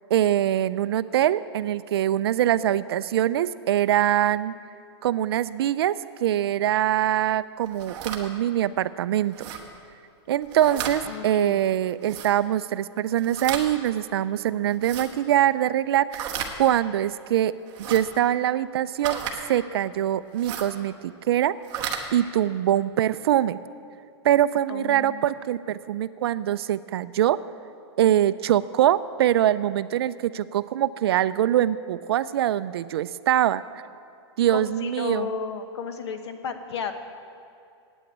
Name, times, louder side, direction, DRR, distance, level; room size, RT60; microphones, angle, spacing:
voice 1, 0.1-4.5 5.0-9.3 10.3-17.5 17.8-19.2 19.5-21.5 22.1-23.6 24.2-27.4 28.0-33.6 34.4-35.3, right 11 dB, 60° right, 16 dB, 0.4 m, -23 dB
sound 1, 7.7-8.2 9.3-9.6 10.4-11.0 12.0-12.3 13.2-13.7 14.7-15.1 16.1-16.5 17.7-18.0 19.0-19.4 20.3-20.7 21.6-22.0, right 8 dB, 30° right, 1.1 m, -33 dB
voice 2, 11.0-11.6 24.7-25.3 34.5-36.9, left 6 dB, 70° left, 8 dB, 1.1 m, -33 dB
9.2 x 8.9 x 8.7 m, 2.5 s
hypercardioid pair, 160°, 15 cm